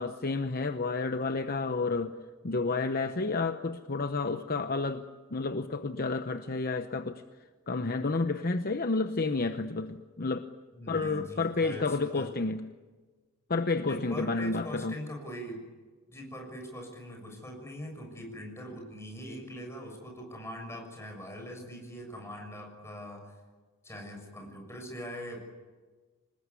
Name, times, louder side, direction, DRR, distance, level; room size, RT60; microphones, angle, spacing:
voice 1, 0.0-2.1 2.4-7.2 7.7-10.5 10.9-12.6 13.5-15.0, left 3 dB, 40° left, 9 dB, 0.9 m, -30 dB
voice 2, 10.7-12.3 13.8-15.6 16.1-23.3 23.8-25.4, equal, 10° left, 2 dB, 6.6 m, -42 dB
26.5 x 20.0 x 9.7 m, 1.4 s
head